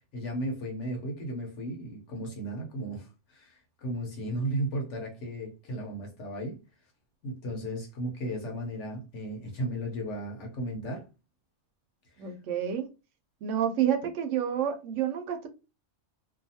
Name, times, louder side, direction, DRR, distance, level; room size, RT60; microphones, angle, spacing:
voice 1, 0.1-3.5 3.8-6.6 7.2-11.1, right 1 dB, 70° left, 1.1 m, -35 dB
voice 2, 12.2-12.9 13.4-15.5, right 9 dB, 80° right, 0.9 m, -29 dB
2.6 x 2.3 x 2.7 m
omnidirectional pair, 1.3 m